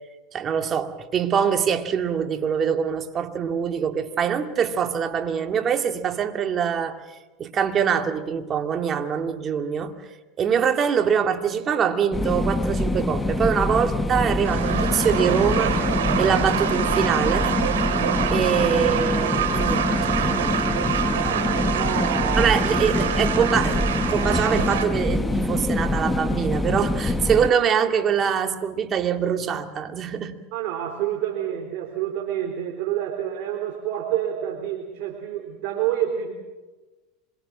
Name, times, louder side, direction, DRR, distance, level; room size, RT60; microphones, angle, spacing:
voice 1, 0.3-7.0 7.4-9.9 10.4-15.8 16.2-17.6 18.3-20.5 22.4-30.4, right 7 dB, 35° right, 2.2 m, -24 dB
sound 1, 12.1-27.5, left 2 dB, 10° left, 1.1 m, -25 dB
sound 2, 14.4-24.8, right 8 dB, 85° right, 3.1 m, -26 dB
voice 2, 21.2-22.5 30.5-36.3, right 11 dB, 65° right, 3.6 m, -28 dB
26.5 x 22.5 x 6.3 m
hypercardioid pair, 105°, 0 cm